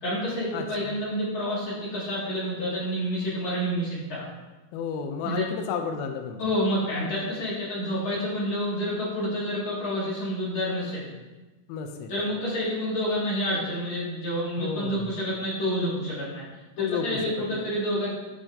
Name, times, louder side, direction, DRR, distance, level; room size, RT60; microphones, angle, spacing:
voice 1, 0.0-4.3 5.2-5.4 6.4-11.1 12.1-16.4 16.8-18.1, equal, 35° left, -8 dB, 2.7 m, -28 dB
voice 2, 0.5-0.9 4.7-6.4 11.7-12.1 14.6-15.2 16.8-17.7, left 6 dB, 80° left, 5 dB, 2.3 m, -32 dB
11.0 x 6.0 x 2.8 m, 1.2 s
omnidirectional pair, 4.8 m